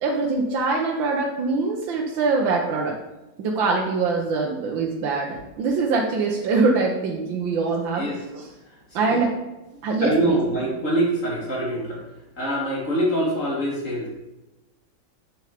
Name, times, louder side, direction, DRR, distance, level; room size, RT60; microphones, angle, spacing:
voice 1, 0.0-2.9 3.4-8.1 8.3-8.5 9.0-9.3 9.8-10.4, right 4 dB, 75° right, 0 dB, 1.6 m, -23 dB
voice 2, 10.0-12.0 12.4-14.1, right 1 dB, 40° left, -2 dB, 2.5 m, -24 dB
8.2 x 6.4 x 5.1 m, 1.0 s
omnidirectional pair, 2.1 m